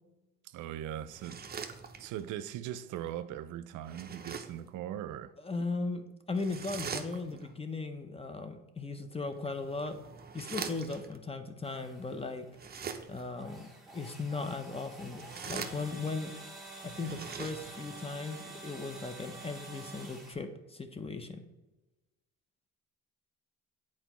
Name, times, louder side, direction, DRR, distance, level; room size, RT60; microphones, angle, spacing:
voice 1, 0.4-1.4 2.0-5.3, right 11 dB, 85° right, 0.5 m, -40 dB
sound 1, 1.1-2.3 3.8-4.7 6.4-7.5 9.3-11.2 12.5-13.4 15.0-16.2 16.9-18.0, right 6 dB, 30° right, 0.6 m, -43 dB
voice 2, 5.4-10.0 10.3-12.5 13.1-16.3 16.8-21.4, left 3 dB, 20° left, 0.7 m, -37 dB
sound 2, 11.6-20.3, right 2 dB, ahead, 2.1 m, -49 dB
8.1 x 4.4 x 3.0 m
cardioid pair, 90°, 30 cm